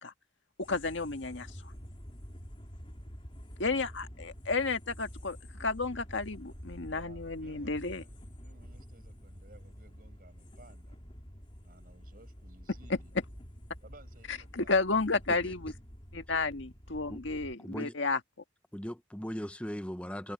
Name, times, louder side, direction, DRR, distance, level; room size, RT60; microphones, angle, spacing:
sound 1, 0.6-17.5, equal, 30° left, 4.1 m, -48 dB
voice 1, 0.7-1.5 3.6-8.0 14.3-15.7 16.1-18.2, left 3 dB, 85° left, 1.8 m, -32 dB
voice 2, 6.9-11.0 11.6-13.2 13.8-14.8, right 1 dB, 50° right, 5.8 m, -58 dB
voice 3, 17.6-17.9 18.7-20.3, equal, 5° left, 0.8 m, -39 dB
head